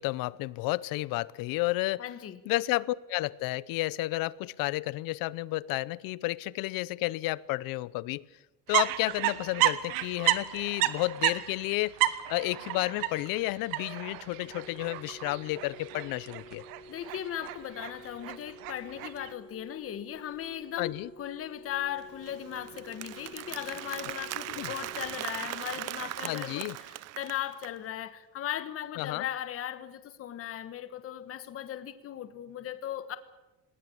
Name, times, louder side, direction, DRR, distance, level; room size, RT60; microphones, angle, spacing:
voice 1, 0.0-2.0 2.5-8.2 8.7-11.9 12.3-16.6 20.8-21.1 24.5-24.7 26.2-26.8 29.0-29.3, left 19 dB, 80° left, 0.8 m, -31 dB
voice 2, 2.0-2.4 16.9-33.2, left 11 dB, 40° left, 1.3 m, -38 dB
sound 1, 8.7-19.3, right 15 dB, 85° right, 1.2 m, -32 dB
sound 2, 14.4-25.1, left 1 dB, 25° left, 5.3 m, -51 dB
Applause, 22.0-27.8, right 14 dB, 50° right, 0.7 m, -39 dB
19.5 x 19.0 x 8.6 m
cardioid pair, 145°, 33 cm